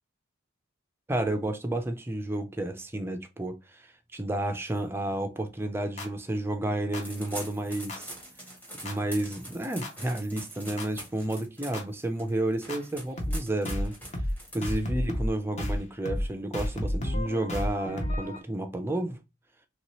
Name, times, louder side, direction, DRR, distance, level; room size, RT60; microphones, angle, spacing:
voice 1, 1.1-8.2 8.8-14.0 14.5-19.2, right 1 dB, 10° right, 0.4 m, -31 dB
sound 1, 6.0-6.1 6.9-7.0 7.9-8.0 8.9-9.0 9.8-9.9 10.8-10.9 11.7-11.8 12.7-12.8 13.2-13.4 13.7-13.9 14.1-14.4 14.6-15.3 15.6-15.8 16.1-16.3 16.5-18.4, left 1 dB, 30° left, 0.7 m, -31 dB
sound 2, 7.0-15.0, right 1 dB, 10° left, 0.9 m, -44 dB
3.1 x 2.8 x 3.0 m
head